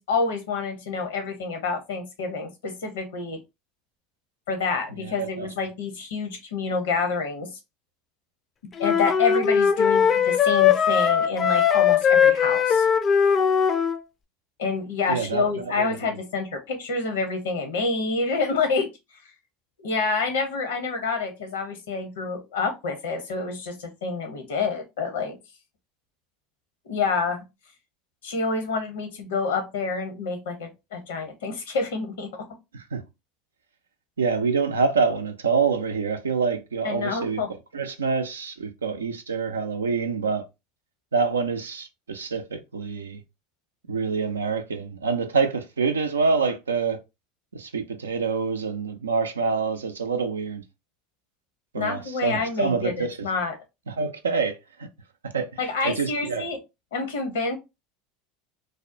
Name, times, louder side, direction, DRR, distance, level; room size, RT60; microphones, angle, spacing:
voice 1, 0.0-3.4 4.5-7.5 8.8-12.8 14.6-18.9 19.8-25.4 26.9-27.4 28.2-32.4 36.8-37.5 51.8-53.6 55.6-56.6 56.9-57.6, left 4 dB, 80° left, 0.7 m, -28 dB
voice 2, 5.0-5.5 15.1-16.1 32.7-33.0 34.2-37.4 37.7-40.4 41.1-43.2 43.9-47.0 47.5-50.6 51.7-53.3 53.9-54.6 55.2-55.5 55.8-56.5, right 5 dB, 90° right, 0.4 m, -26 dB
sound 1, 8.8-14.0, left 7 dB, 35° left, 0.3 m, -20 dB
2.6 x 2.0 x 2.5 m
hypercardioid pair, 85°, 0 cm